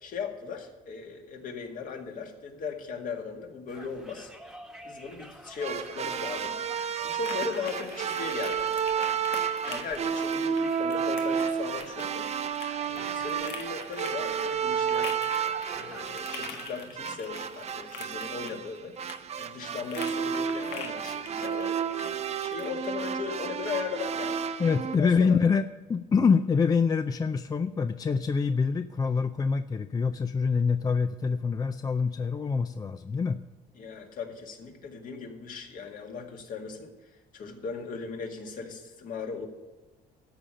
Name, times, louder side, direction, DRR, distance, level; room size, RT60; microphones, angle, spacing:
voice 1, 0.0-4.3 4.8-6.6 7.0-8.7 9.7-12.3 12.9-15.1 15.7-19.0 19.4-21.8 22.4-24.5 24.9-25.4 33.8-36.9 37.3-39.5, left 5 dB, 55° left, 2 dB, 1.9 m, -38 dB
Conversation, 3.7-16.6, right 1 dB, ahead, 1.3 m, -49 dB
sound 1, 5.6-25.0, right 7 dB, 40° right, 0.6 m, -31 dB
sound 2, 5.8-23.0, left 6 dB, 75° left, 1.4 m, -46 dB
voice 2, 24.6-25.6 25.9-33.4, left 5 dB, 20° left, 10 dB, 0.4 m, -25 dB
13.0 x 4.9 x 8.6 m, 1.2 s
cardioid pair, 110°, 17 cm